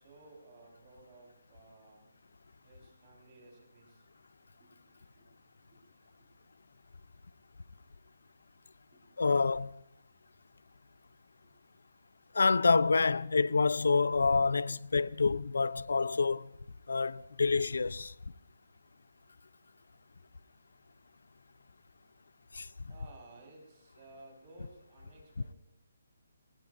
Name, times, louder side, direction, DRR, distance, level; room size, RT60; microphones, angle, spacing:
voice 1, 0.0-2.0 2.6-4.0 4.6-4.7 4.9-5.3 5.7-6.3 8.9-9.0 22.9-25.5, right 2 dB, 20° right, 4.6 m, -57 dB
voice 2, 9.2-9.8 12.3-16.5 16.9-18.1 22.5-22.7, left 4 dB, 80° left, 0.6 m, -27 dB
28.5 x 19.0 x 2.6 m
hypercardioid pair, 180°, 0 cm